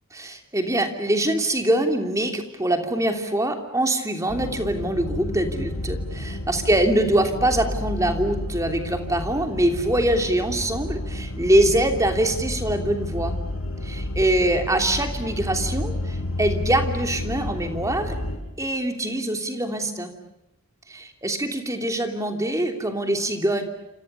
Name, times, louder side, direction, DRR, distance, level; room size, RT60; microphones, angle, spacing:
voice 1, 0.1-13.3 13.8-18.2 18.6-20.1 20.9-23.6, right 1 dB, 15° right, 5 dB, 3.0 m, -23 dB
sound 1, 4.3-18.4, left 1 dB, 85° left, 6.0 m, -31 dB
29.0 x 28.0 x 6.8 m, 0.90 s
head